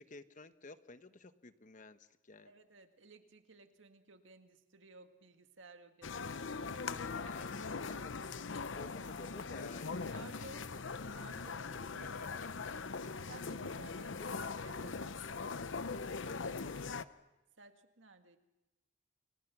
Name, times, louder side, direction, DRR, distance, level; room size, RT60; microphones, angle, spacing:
voice 1, 0.0-2.5 7.3-8.3 8.7-10.1 10.4-10.5 11.9-12.7 16.2-16.8, left 3 dB, 45° left, 11 dB, 1.1 m, -53 dB
voice 2, 2.4-6.8 7.1-7.4 10.1-10.7 11.1-11.7 13.3-15.3 17.6-18.4, right 3 dB, 80° right, 7 dB, 1.9 m, -56 dB
sound 1, 6.0-17.0, left 4 dB, 75° left, 0.8 m, -41 dB
30.0 x 25.5 x 6.1 m, 1.0 s
head